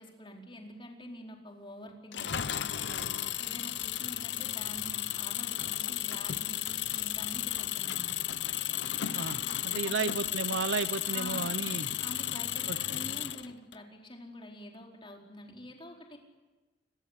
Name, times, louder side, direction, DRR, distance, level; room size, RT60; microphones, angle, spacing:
voice 1, 0.0-3.1 3.4-8.1 9.8-10.0 11.1-11.5 12.0-16.2, left 1 dB, 30° left, 1 dB, 4.5 m, -47 dB
Engine, 2.1-13.8, left 12 dB, 70° left, 0.8 m, -34 dB
voice 2, 9.1-11.9 12.7-13.0, right 4 dB, 75° right, 16 dB, 0.8 m, -34 dB
28.5 x 22.5 x 8.3 m, 1.2 s
head